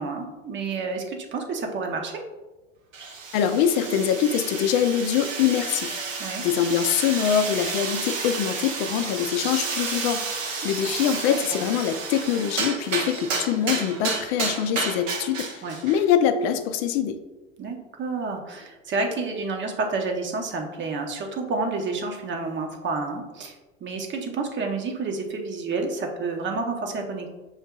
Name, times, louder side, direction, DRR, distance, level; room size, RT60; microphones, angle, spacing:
voice 1, 0.0-2.2 6.2-6.4 10.8-10.9 11.3-11.6 15.6-15.8 17.6-23.6 23.8-27.3, right 3 dB, 30° right, 2 dB, 0.8 m, -29 dB
sound 1, 2.9-16.1, right 4 dB, 80° right, 0.9 m, -31 dB
voice 2, 3.3-17.2, left 9 dB, 55° left, 9 dB, 0.5 m, -24 dB
7.1 x 2.7 x 2.3 m, 1.1 s
hypercardioid pair, 80°, 38 cm